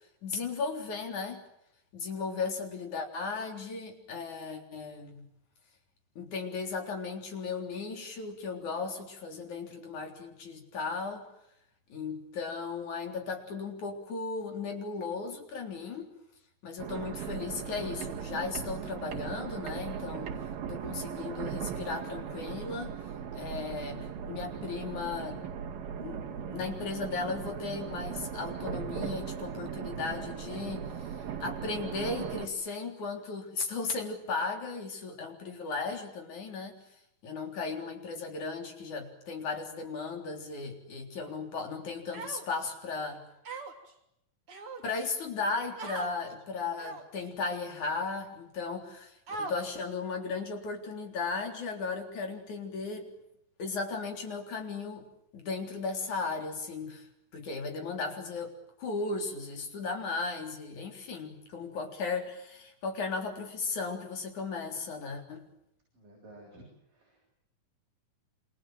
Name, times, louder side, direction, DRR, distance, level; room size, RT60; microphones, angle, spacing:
voice 1, 0.2-1.4 1.9-5.3 6.2-11.3 11.9-16.1 16.6-20.3 20.7-23.0 23.3-25.4 26.0-36.8 37.2-43.2 44.8-53.1 53.6-55.1 55.3-57.1 57.3-65.4, left 4 dB, 55° left, 3 dB, 5.0 m, -36 dB
sound 1, 16.8-32.5, right 8 dB, 85° right, 4.1 m, -38 dB
Human voice, 42.1-42.7 43.4-43.9 44.5-45.1 45.8-46.1 46.8-47.2 47.9-48.0 49.3-49.9, right 3 dB, 40° right, 3.8 m, -40 dB
voice 2, 65.9-66.7 66.9-67.2, right 1 dB, 65° right, -2 dB, 9.5 m, -52 dB
28.0 x 27.0 x 7.7 m, 0.79 s
omnidirectional pair, 4.1 m